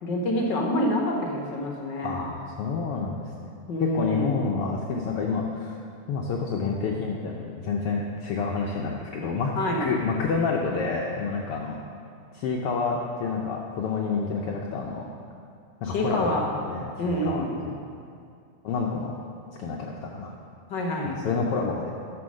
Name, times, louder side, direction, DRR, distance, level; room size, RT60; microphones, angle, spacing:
voice 1, 0.0-2.3 3.7-4.4 9.6-9.9 15.9-16.5 17.0-17.5 20.7-21.2, left 1 dB, 60° left, 0 dB, 1.2 m, -27 dB
voice 2, 2.0-3.5 3.8-5.8 6.1-9.5 9.8-11.8 12.3-15.1 15.8-16.4 16.7-17.7 18.6-19.1 19.6-20.3 21.2-21.9, left 4 dB, 80° left, -1 dB, 1.3 m, -29 dB
11.5 x 6.3 x 6.3 m, 2.4 s
omnidirectional pair, 3.4 m